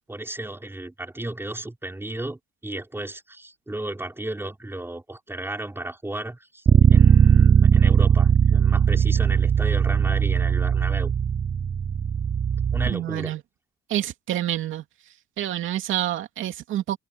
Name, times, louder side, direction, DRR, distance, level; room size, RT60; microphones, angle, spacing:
voice 1, 0.1-6.6 6.9-11.1 12.7-13.3, right 1 dB, 10° right, 5.4 m, -34 dB
Bass guitar, 6.7-12.9, right 7 dB, 35° right, 0.5 m, -18 dB
voice 2, 12.9-13.4 13.9-14.8 15.4-17.0, right 12 dB, 80° right, 2.6 m, -27 dB
cardioid pair, 90°, 20 cm